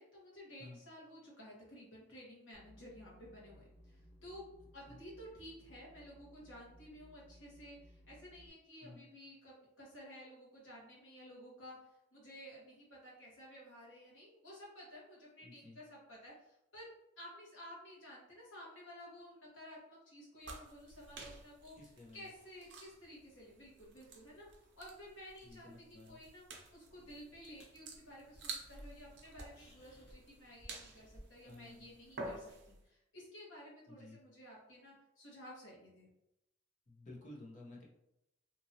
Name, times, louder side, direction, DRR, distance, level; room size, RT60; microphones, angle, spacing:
voice 1, 0.0-4.5 4.7-11.8 12.1-21.7 22.1-36.1, equal, 85° left, -5 dB, 1.3 m, -54 dB
sound 1, 2.5-8.5, equal, 5° right, 0.4 m, -61 dB
voice 2, 15.4-15.8 21.8-22.3 25.4-26.2 31.5-31.8 33.9-34.2 36.9-37.8, left 2 dB, 40° left, -3 dB, 0.8 m, -54 dB
sound 2, 20.4-32.8, right 3 dB, 65° right, 0.6 m, -51 dB
sound 3, 27.0-32.2, equal, 60° left, 1.0 m, -61 dB
2.9 x 2.6 x 2.7 m, 0.85 s
head